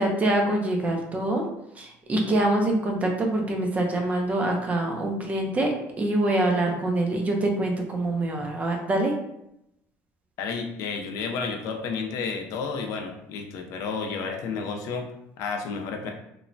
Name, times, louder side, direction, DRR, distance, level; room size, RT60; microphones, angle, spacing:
voice 1, 0.0-1.4 1.8-9.1, right 1 dB, 25° right, 2 dB, 0.5 m, -25 dB
voice 2, 10.4-15.1 15.4-16.1, left 5 dB, 65° left, 3 dB, 0.4 m, -31 dB
2.9 x 2.1 x 2.5 m, 0.81 s
cardioid pair, 140°, 6 cm